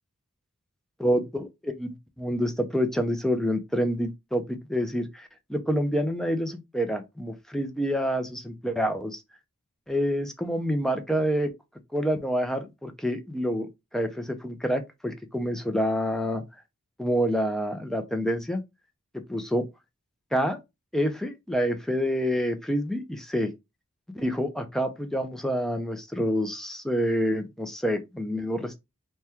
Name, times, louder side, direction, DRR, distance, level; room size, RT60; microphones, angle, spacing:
voice 1, 1.0-9.2 9.9-11.5 11.9-16.4 17.0-18.6 19.3-19.6 20.3-20.6 20.9-23.5 24.1-28.8, equal, ahead, 0.4 m, -27 dB
2.9 x 2.2 x 3.4 m
head